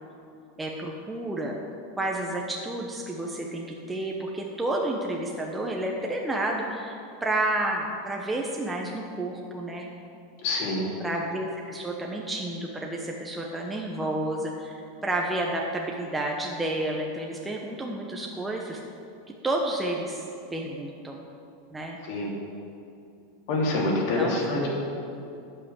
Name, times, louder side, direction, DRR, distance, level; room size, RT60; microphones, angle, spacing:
voice 1, 0.6-1.6 2.0-9.9 11.0-18.8 19.4-20.2 20.5-21.2 21.7-22.0 23.8-24.6, right 1 dB, 10° right, -1 dB, 1.1 m, -30 dB
voice 2, 10.4-10.9 22.0-22.3 23.5-24.7, left 2 dB, 60° left, -3 dB, 3.0 m, -26 dB
12.0 x 5.8 x 8.0 m, 2.6 s
supercardioid pair, 125°, 0 cm